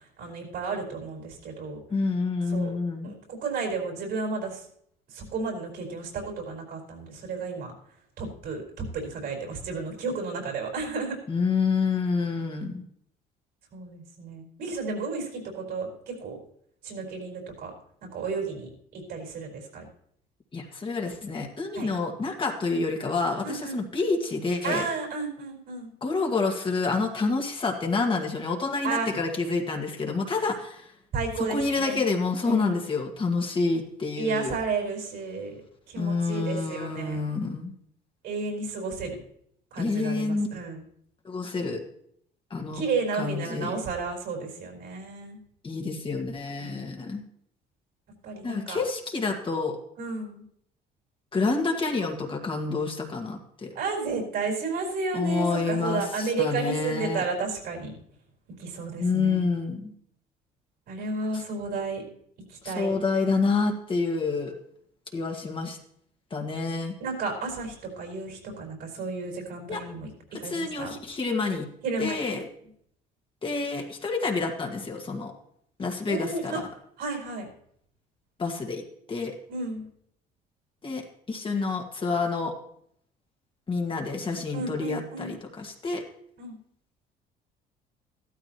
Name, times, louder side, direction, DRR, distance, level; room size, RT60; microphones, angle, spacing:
voice 1, 0.2-1.8 2.5-2.7 3.0-4.6 5.1-7.7 8.2-11.2 13.7-16.4 16.8-17.7 18.0-19.9 21.7-21.9 23.4-23.8 24.6-25.9 28.8-29.1 31.1-32.0 32.4-32.8 34.2-35.5 35.9-37.2 38.2-39.2 39.7-40.8 42.7-45.4 46.6-47.0 48.2-48.8 50.0-50.4 53.7-57.9 58.6-59.5 60.9-62.0 62.5-62.9 67.0-71.0 71.8-72.3 76.1-76.6 77.0-77.5 79.5-79.9 84.5-85.3 86.4-86.6, right 4 dB, 70° right, 2 dB, 4.7 m, -32 dB
voice 2, 1.9-3.2 11.3-12.8 20.5-24.9 26.0-30.9 31.4-34.5 36.0-37.7 39.8-40.5 41.2-41.8 42.5-42.8 43.2-43.7 45.6-47.2 48.4-49.8 51.3-53.7 55.1-57.3 59.0-59.9 61.3-61.4 62.6-64.5 65.1-65.8 66.3-67.0 69.7-69.8 70.4-71.7 72.0-72.5 73.4-75.3 75.8-76.6 78.4-78.8 79.1-79.3 80.8-82.5 83.7-86.0, left 4 dB, 30° left, 2 dB, 1.9 m, -28 dB
14.5 x 13.0 x 3.0 m, 0.68 s
cardioid pair, 110°, 17 cm